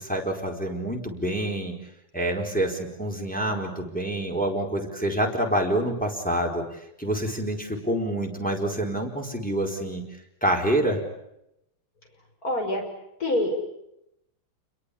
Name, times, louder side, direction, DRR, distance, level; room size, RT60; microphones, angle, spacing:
voice 1, 0.0-1.7 2.1-6.6 7.0-10.0 10.4-11.0, right 1 dB, 5° left, 0 dB, 4.5 m, -27 dB
voice 2, 12.4-12.9 13.2-13.5, left 1 dB, 40° left, 3 dB, 6.2 m, -25 dB
29.0 x 22.5 x 8.6 m, 0.83 s
omnidirectional pair, 2.3 m